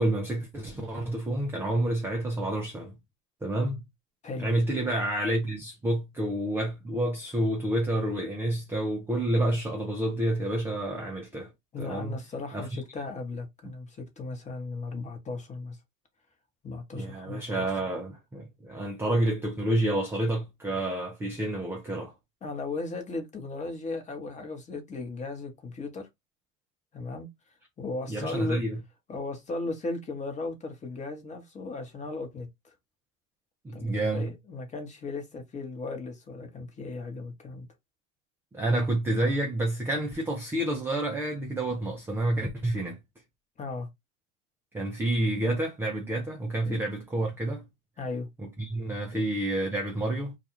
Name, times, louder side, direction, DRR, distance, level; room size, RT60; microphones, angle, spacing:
voice 1, 0.0-3.0 3.4-3.8 4.4-11.5 11.8-12.2 12.5-12.8 16.9-22.1 28.1-28.8 33.6-34.3 38.5-43.0 44.7-47.6 48.4-50.4, right 1 dB, 5° right, 0.4 m, -29 dB
voice 2, 11.7-15.8 16.6-17.7 22.4-26.1 26.9-27.3 27.8-28.6 29.1-32.7 33.7-37.7 43.6-43.9 46.6-46.8 48.0-48.3 49.1-49.2, left 3 dB, 20° left, 0.9 m, -36 dB
2.4 x 2.3 x 2.9 m
hypercardioid pair, 100°, 39 cm